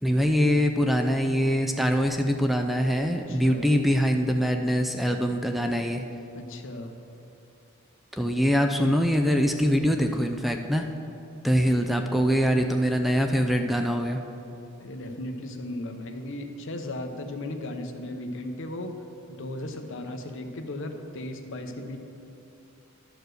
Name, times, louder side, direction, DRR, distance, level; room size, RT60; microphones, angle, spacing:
voice 1, 0.0-6.0 8.1-10.8 11.4-14.2, equal, ahead, 4 dB, 0.4 m, -23 dB
voice 2, 3.3-3.7 6.3-7.0 12.5-12.8 14.8-19.0 19.3-22.0, left 1 dB, 65° left, 5 dB, 0.8 m, -36 dB
11.5 x 4.8 x 6.4 m, 2.8 s
head